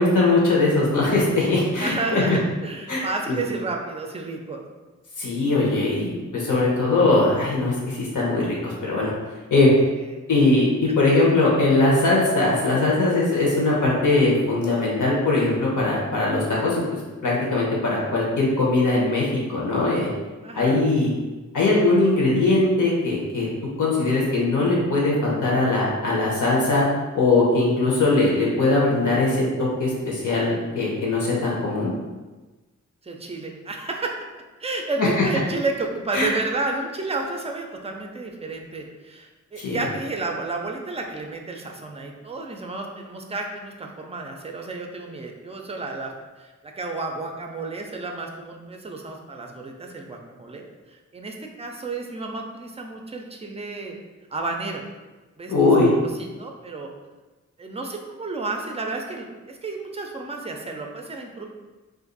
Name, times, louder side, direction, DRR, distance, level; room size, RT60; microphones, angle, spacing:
voice 1, 0.0-2.4 2.9-3.0 3.3-3.4 5.2-9.1 9.5-9.7 10.3-16.8 17.2-20.1 20.5-21.1 21.5-23.5 23.8-26.8 27.1-31.9 35.0-35.1 36.1-36.3 39.6-39.8 55.5-55.9, left 2 dB, 75° left, -4 dB, 1.1 m, -20 dB
voice 2, 1.8-4.6 9.8-10.2 20.4-20.8 33.0-34.1 34.6-46.1 46.4-54.0 54.3-54.8 55.4-55.5 56.2-56.9 57.6-61.5, right 3 dB, 20° right, 2 dB, 0.4 m, -31 dB
2.6 x 2.5 x 3.9 m, 1.2 s
wide cardioid pair, 90°, 31 cm